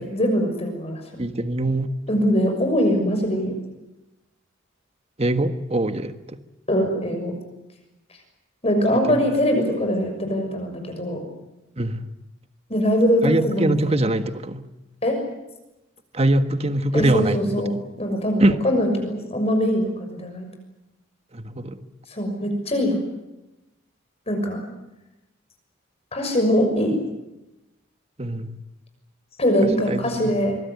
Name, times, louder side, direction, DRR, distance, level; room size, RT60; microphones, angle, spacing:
voice 1, 0.1-1.0 2.1-3.5 6.7-7.3 8.6-11.2 12.7-14.0 15.0-15.2 16.9-17.7 18.0-20.4 22.1-23.0 24.3-24.6 26.1-27.0 29.4-30.6, equal, 30° left, 4 dB, 6.4 m, -22 dB
voice 2, 1.2-1.9 5.2-6.2 8.9-9.2 11.8-12.0 13.2-14.6 16.1-17.4 17.7-17.8 18.4-18.6 21.3-21.8 28.2-28.6 29.9-30.3, right 1 dB, 30° right, 9 dB, 1.5 m, -23 dB
25.0 x 22.0 x 9.5 m, 0.96 s
head